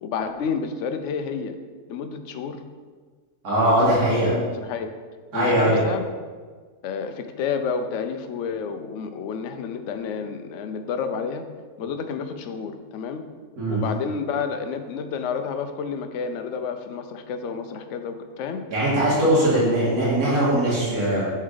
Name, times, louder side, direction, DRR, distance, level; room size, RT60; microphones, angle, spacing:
voice 1, 0.0-1.6 1.9-2.6 3.6-4.9 5.3-6.1 6.8-11.4 11.8-13.2 13.7-18.6 19.3-19.6, left 6 dB, 65° left, 7 dB, 0.8 m, -30 dB
voice 2, 3.4-4.3 5.3-5.8 13.6-13.8 18.7-21.3, right 1 dB, 85° right, -8 dB, 2.1 m, -20 dB
6.4 x 4.4 x 3.8 m, 1.5 s
omnidirectional pair, 1.6 m